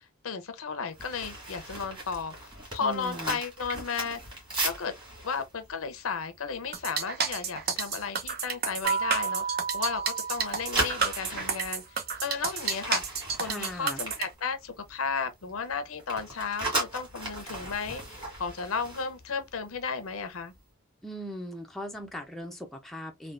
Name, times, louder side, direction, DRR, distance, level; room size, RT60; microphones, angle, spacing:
voice 1, 0.0-4.2 4.6-4.9 5.2-9.4 9.7-13.0 13.4-20.5, left 5 dB, 80° left, 0.6 m, -34 dB
sound 1, 0.9-7.0 7.4-7.6 8.0-8.3 8.8-10.0 10.3-15.1 15.3-19.8 20.1-20.3, right 1 dB, 20° right, 1.8 m, -37 dB
voice 2, 2.8-3.4 13.4-14.0 21.0-23.3, equal, ahead, 0.5 m, -39 dB
sound 2, 6.7-14.3, right 6 dB, 45° right, 0.7 m, -30 dB
sound 3, 8.8-11.6, right 6 dB, 65° right, 1.0 m, -33 dB
3.5 x 2.3 x 2.4 m
head